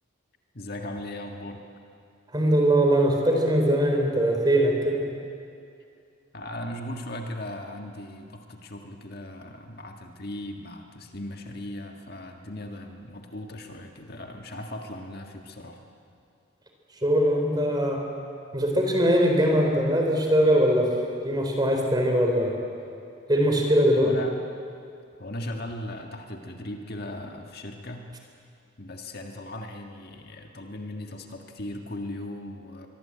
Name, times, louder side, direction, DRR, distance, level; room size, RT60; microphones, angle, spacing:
voice 1, 0.5-1.6 6.3-15.8 23.9-24.4 25.2-28.1 28.8-32.9, left 1 dB, 50° left, 3 dB, 1.8 m, -38 dB
voice 2, 2.3-5.1 16.9-18.1 18.5-22.6 23.3-24.2, equal, 20° right, 1 dB, 4.0 m, -22 dB
24.5 x 22.0 x 8.8 m, 2.5 s
head